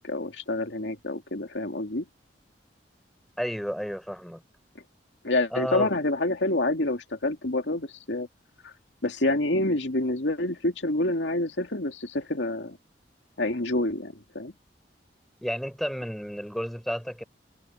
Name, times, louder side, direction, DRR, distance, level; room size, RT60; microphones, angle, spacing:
voice 1, 0.0-2.0 5.2-8.3 8.6-8.7 9.0-12.8 13.4-14.5, left 2 dB, 75° left, 2.3 m, -27 dB
voice 2, 3.4-4.4 5.5-5.9 15.4-17.2, equal, ahead, 5.2 m, -31 dB
head